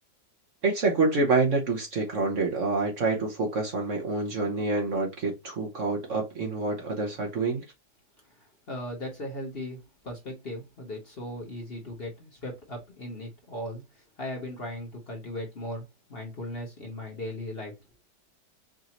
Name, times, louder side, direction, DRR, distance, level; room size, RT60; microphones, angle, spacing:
voice 1, 0.6-7.6, right 3 dB, 50° right, 1.1 m, -27 dB
voice 2, 8.3-17.8, left 1 dB, 35° left, 1.2 m, -38 dB
5.0 x 2.7 x 2.9 m
omnidirectional pair, 1.9 m